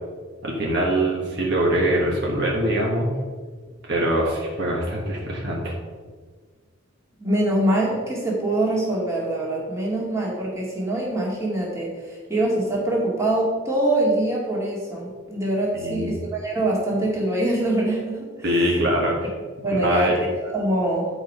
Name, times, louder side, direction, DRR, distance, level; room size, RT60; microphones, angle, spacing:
voice 1, 0.4-3.1 3.8-5.7 15.7-16.1 18.4-19.3 19.8-20.2, right 1 dB, 55° right, -2 dB, 1.4 m, -23 dB
voice 2, 7.2-18.8 19.6-21.1, right 1 dB, 15° right, -4 dB, 2.1 m, -24 dB
10.5 x 4.7 x 5.5 m, 1.5 s
head